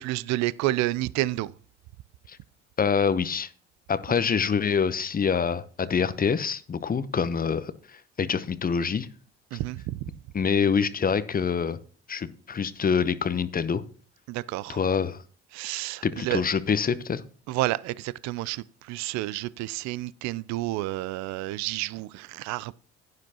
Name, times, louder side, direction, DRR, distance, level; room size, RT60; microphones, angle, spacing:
voice 1, 0.0-1.5 9.5-10.1 14.3-14.8 15.5-16.4 17.5-22.7, right 17 dB, 60° right, 0.5 m, -30 dB
voice 2, 2.8-3.5 3.9-9.1 10.3-11.8 12.1-13.8 14.7-15.2 16.0-17.2, left 6 dB, 30° left, 0.8 m, -26 dB
11.5 x 9.5 x 2.9 m
hypercardioid pair, 60°, 32 cm